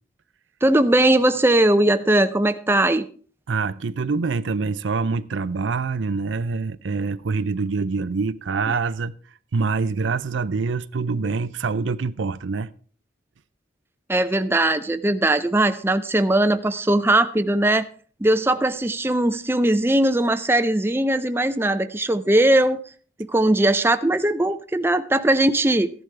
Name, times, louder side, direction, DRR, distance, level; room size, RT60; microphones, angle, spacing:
voice 1, 0.6-3.1 14.1-17.9 18.2-22.8 23.2-25.9, right 1 dB, 10° right, 0.5 m, -19 dB
voice 2, 3.5-9.1 9.5-12.7, right 4 dB, 85° right, 0.5 m, -25 dB
14.5 x 11.0 x 3.3 m
head